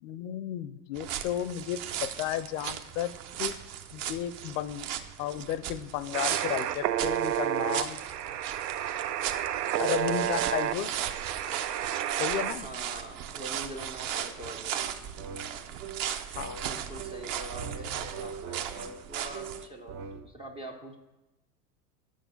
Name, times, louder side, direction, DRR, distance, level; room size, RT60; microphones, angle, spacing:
voice 1, 0.0-3.1 3.4-3.5 3.9-4.9 5.2-8.0 9.8-10.9 12.2-12.6 16.4-16.6, left 11 dB, 55° left, 15 dB, 0.5 m, -33 dB
sound 1, 0.9-19.7, right 10 dB, 45° right, 0.7 m, -37 dB
sound 2, 6.1-12.5, right 11 dB, 80° right, 0.7 m, -31 dB
voice 2, 12.5-14.9 16.6-21.0, right 1 dB, 15° right, 2 dB, 0.3 m, -44 dB
sound 3, 14.8-20.3, right 5 dB, 60° right, 1.0 m, -42 dB
6.4 x 6.2 x 6.9 m, 0.99 s
hypercardioid pair, 105°, 49 cm